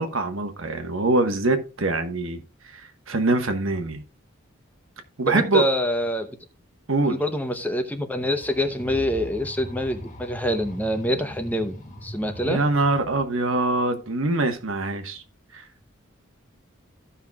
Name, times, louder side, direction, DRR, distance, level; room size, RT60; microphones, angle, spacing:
voice 1, 0.0-2.4 2.7-4.0 5.2-5.6 6.9-7.2 12.4-15.2 15.5-15.6, right 2 dB, 80° right, 1.3 m, -24 dB
voice 2, 5.3-6.3 7.1-11.7 12.0-12.6, equal, 10° left, 0.7 m, -25 dB
sound 1, 8.2-13.2, equal, 35° left, 1.8 m, -39 dB
15.5 x 5.7 x 2.4 m
head